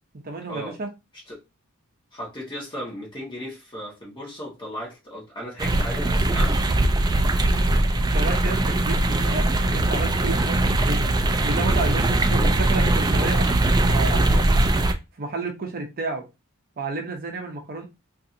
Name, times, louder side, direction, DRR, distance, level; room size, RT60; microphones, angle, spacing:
voice 1, 0.2-0.9 8.0-11.1 11.4-14.4 15.2-16.2 16.8-17.8, right 3 dB, 45° right, 0.7 m, -31 dB
voice 2, 2.1-6.8, equal, 20° left, 1.5 m, -36 dB
sound 1, 5.6-14.9, right 2 dB, 20° right, 0.3 m, -21 dB
3.7 x 2.6 x 2.6 m
head